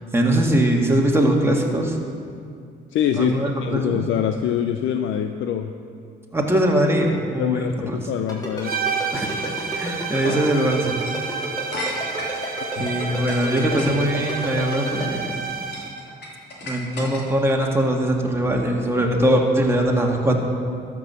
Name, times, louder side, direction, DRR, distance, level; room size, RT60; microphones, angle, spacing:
voice 1, 0.1-2.0 3.1-4.0 6.3-8.0 9.1-9.3 9.8-10.9 12.8-15.3 16.6-20.4, right 1 dB, 10° right, 0 dB, 1.7 m, -21 dB
voice 2, 2.9-3.3 3.6-5.7 7.4-8.7 12.8-12.9, left 10 dB, 75° left, 7 dB, 0.5 m, -24 dB
Ringtone, 8.3-15.0, equal, 20° left, 3.4 m, -31 dB
sound 1, 8.6-16.0, right 6 dB, 50° right, 1.3 m, -30 dB
sound 2, 9.2-9.4 10.2-10.4 11.0-11.2 11.7-12.5 13.0-14.3 15.0-15.4 15.7-17.5, left 1 dB, 60° left, 2.9 m, -34 dB
13.0 x 6.0 x 7.0 m, 2.3 s
cardioid pair, 90°, 20 cm